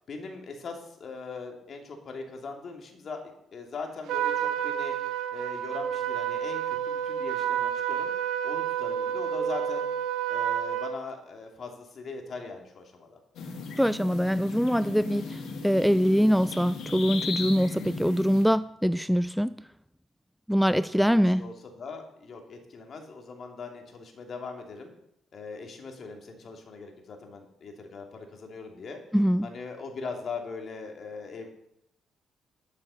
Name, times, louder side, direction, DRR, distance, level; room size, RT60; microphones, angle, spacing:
voice 1, 0.1-3.2 3.5-5.0 5.3-8.1 8.4-9.9 10.3-13.2 20.9-24.9 25.3-29.0 29.4-31.5, left 4 dB, 50° left, 3.0 m, -40 dB
Trumpet, 4.1-11.0, right 9 dB, 85° right, 0.9 m, -29 dB
sound 1, 13.3-18.4, left 4 dB, 80° left, 2.6 m, -37 dB
voice 2, 13.8-19.7 20.5-21.4 29.1-29.5, equal, ahead, 0.4 m, -24 dB
12.5 x 7.5 x 6.5 m
cardioid pair, 90°, 0 cm